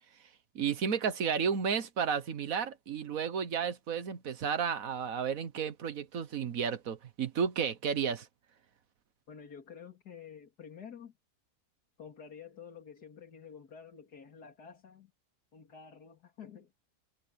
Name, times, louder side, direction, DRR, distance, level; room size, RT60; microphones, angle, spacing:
voice 1, 0.5-8.3, right 7 dB, 65° right, 1.6 m, -32 dB
voice 2, 9.3-11.1 12.0-15.1 15.5-16.7, left 7 dB, 85° left, 3.1 m, -50 dB
omnidirectional pair, 1.6 m